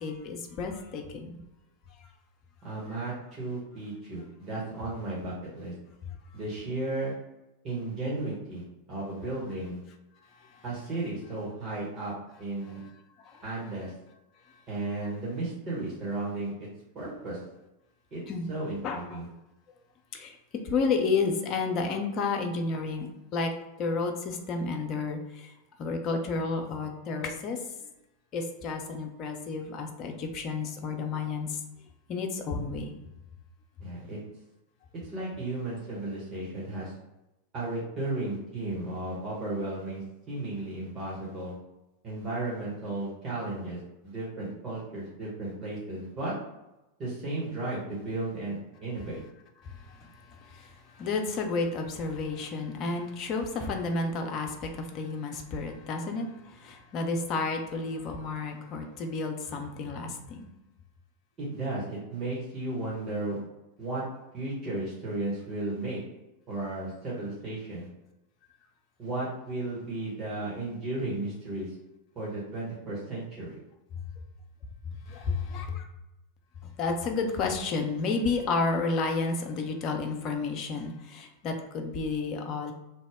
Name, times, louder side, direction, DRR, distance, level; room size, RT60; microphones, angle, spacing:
voice 1, 0.0-1.4 2.0-2.1 10.3-10.6 12.7-12.9 13.2-13.4 14.5-14.6 18.3-18.5 18.8-19.2 20.1-20.4 20.6-23.5 23.8-25.5 25.8-27.6 28.3-31.6 32.1-33.0 49.6-60.5 73.9-74.0 75.1-75.9 76.6-82.7, left 4 dB, 35° left, 4 dB, 0.5 m, -31 dB
voice 2, 2.6-5.7 6.3-7.1 7.6-8.6 8.9-9.8 10.6-12.1 12.4-12.8 13.4-13.9 14.7-16.7 16.9-17.4 18.1-18.2 18.5-19.2 33.8-34.2 35.1-36.9 37.5-41.5 42.0-46.3 47.0-49.2 61.4-63.4 63.8-64.0 64.3-66.0 66.5-67.9 69.0-71.7 72.1-73.6, right 2 dB, 30° right, -7 dB, 1.3 m, -34 dB
2.9 x 2.1 x 3.4 m, 0.95 s
figure-of-eight pair, 90°, 0 cm